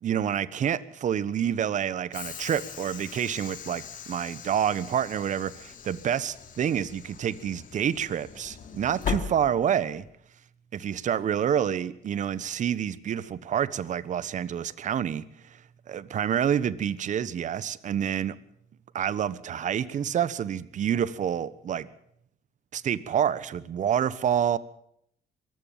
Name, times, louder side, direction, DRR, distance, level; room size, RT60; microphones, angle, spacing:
voice 1, 0.0-10.0 10.7-15.6 15.9-18.4 18.9-21.9 22.7-24.6, right 9 dB, 45° right, 18 dB, 1.2 m, -28 dB
Train / Sliding door, 2.1-10.1, left 7 dB, 50° left, 2.8 m, -39 dB
23.0 x 15.5 x 7.4 m, 0.71 s
cardioid pair, 110°, 17 cm